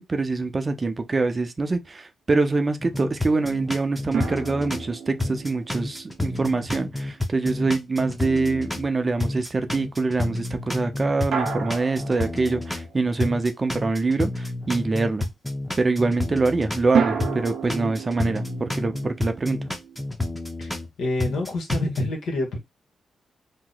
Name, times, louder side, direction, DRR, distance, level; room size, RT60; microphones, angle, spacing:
voice 1, 0.0-15.3 15.8-19.6, right 3 dB, 35° right, 0.5 m, -25 dB
sound 1, 2.8-4.9 5.2-8.9 9.2-12.9 13.2-16.9 17.2-20.9 21.2-22.0, left 2 dB, 10° left, 0.7 m, -30 dB
sound 2, 4.1-7.5 11.3-13.3 16.9-20.0, right 6 dB, 75° right, 0.7 m, -31 dB
voice 2, 21.0-22.6, left 2 dB, 85° left, 1.1 m, -27 dB
2.9 x 2.1 x 3.8 m
cardioid pair, 80°, 0 cm